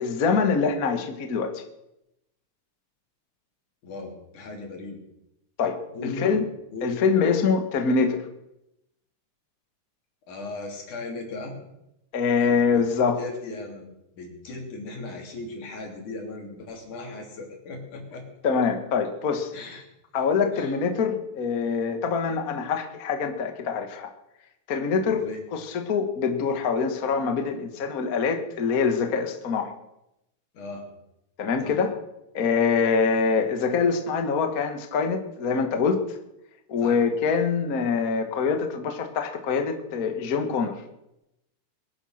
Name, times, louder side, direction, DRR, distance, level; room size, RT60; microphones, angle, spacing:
voice 1, 0.0-1.6 5.6-6.4 6.8-8.3 12.1-13.2 18.4-19.5 20.1-24.1 24.7-25.2 25.5-29.7 31.4-31.9 32.3-36.0 36.7-40.8, left 5 dB, 40° left, 6 dB, 1.5 m, -24 dB
voice 2, 3.8-5.0 5.9-6.5 6.7-6.9 10.3-11.6 12.4-12.8 13.2-13.9 14.2-18.3 19.5-19.9 20.5-20.7 25.0-25.4 30.5-30.9 31.6-31.8 36.8-37.0, left 2 dB, 80° left, 2 dB, 4.6 m, -37 dB
22.0 x 10.0 x 6.5 m, 0.87 s
omnidirectional pair, 3.4 m